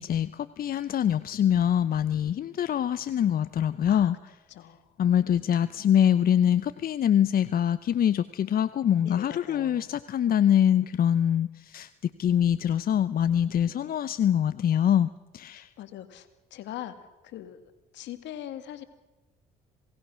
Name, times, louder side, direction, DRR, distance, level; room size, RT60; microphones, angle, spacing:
voice 1, 0.0-4.2 5.0-15.7, left 9 dB, 50° left, 14 dB, 0.7 m, -24 dB
voice 2, 4.5-4.8 9.0-9.9 13.7-14.0 15.5-17.0 17.2-17.6 17.9-18.8, left 12 dB, 75° left, 10 dB, 2.1 m, -41 dB
27.5 x 18.5 x 6.3 m, 1.1 s
supercardioid pair, 70°, 19 cm